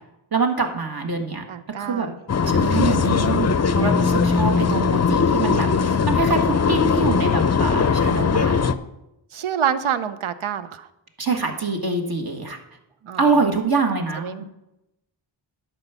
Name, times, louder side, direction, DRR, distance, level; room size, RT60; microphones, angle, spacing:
voice 1, 0.3-1.4 1.8-2.1 2.5-8.5 11.2-12.6 13.2-14.4, right 4 dB, 50° right, 3 dB, 1.5 m, -24 dB
voice 2, 1.5-2.1 2.8-3.3 9.3-10.9 13.0-13.5 14.0-14.4, right 8 dB, 80° right, 13 dB, 0.7 m, -28 dB
sound 1, 2.3-8.7, left 5 dB, 35° left, 0.5 m, -20 dB
11.0 x 4.7 x 6.9 m, 0.91 s
wide cardioid pair, 60°, 48 cm